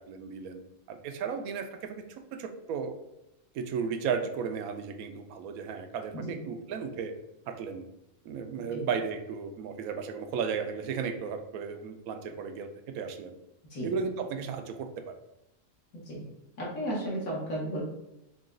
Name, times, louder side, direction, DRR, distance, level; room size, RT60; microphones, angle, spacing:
voice 1, 0.1-0.6 0.9-3.0 3.5-7.1 7.5-7.8 8.2-12.7 12.9-13.3 13.8-15.1, right 6 dB, 85° right, 7 dB, 1.0 m, -34 dB
voice 2, 15.9-16.3 16.6-17.8, right 1 dB, 75° left, -5 dB, 1.6 m, -34 dB
4.8 x 2.3 x 3.7 m, 0.90 s
omnidirectional pair, 1.5 m